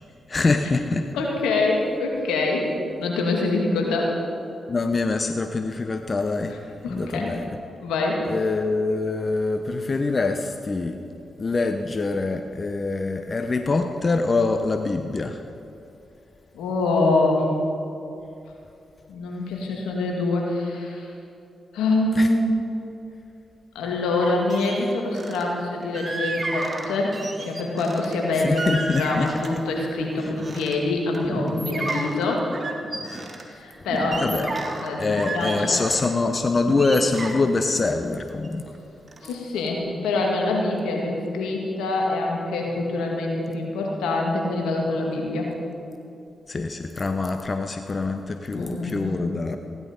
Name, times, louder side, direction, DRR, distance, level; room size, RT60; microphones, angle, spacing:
voice 1, 0.3-1.1 4.7-6.5 6.9-7.5 8.3-11.0 11.4-15.4 22.1-22.3 28.3-29.3 30.2-30.3 34.2-34.5 35.0-38.6 46.5-49.6, left 3 dB, 45° left, 7 dB, 0.8 m, -24 dB
voice 2, 1.1-2.7 3.0-4.1 6.8-7.3 7.8-8.2 16.5-17.5 19.1-21.1 21.7-22.5 23.7-32.5 33.5-34.4 34.8-35.8 39.2-45.5 48.5-49.1, left 2 dB, 85° left, 0 dB, 2.1 m, -25 dB
sound 1, 24.2-25.4 25.9-28.2 28.6-29.7 30.1-30.8 31.1-33.4 33.9-36.1 36.5-38.8 39.1-39.3, right 2 dB, 40° right, 2.1 m, -32 dB
16.0 x 11.0 x 5.3 m, 2.7 s
supercardioid pair, 40°, 0 cm